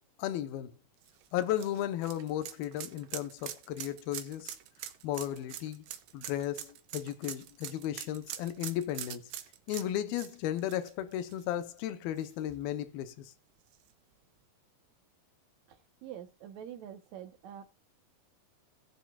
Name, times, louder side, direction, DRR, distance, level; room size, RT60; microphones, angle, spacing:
voice 1, 0.2-0.7 1.3-4.5 5.0-5.8 6.1-9.2 9.7-13.3, left 11 dB, 75° left, 2.7 m, -35 dB
sound 1, 1.0-11.8 12.2-12.3 13.7-13.8, right 12 dB, 85° right, 2.8 m, -44 dB
voice 2, 15.7-17.6, right 10 dB, 65° right, 1.9 m, -46 dB
19.0 x 7.3 x 2.4 m
omnidirectional pair, 4.5 m